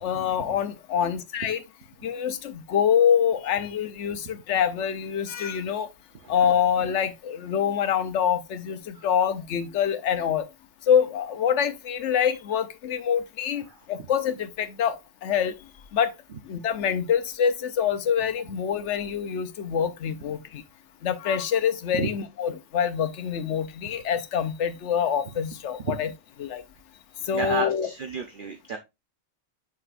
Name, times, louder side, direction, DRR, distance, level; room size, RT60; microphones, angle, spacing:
voice 1, 0.0-1.6 2.0-5.9 6.3-10.4 10.9-15.0 15.2-15.5 15.9-16.1 16.5-20.6 21.0-26.1 26.4-26.6 27.2-27.9, left 8 dB, 75° left, 1.1 m, -25 dB
voice 2, 27.3-28.8, right 5 dB, 50° right, 0.8 m, -30 dB
7.8 x 6.0 x 2.5 m
omnidirectional pair, 1.2 m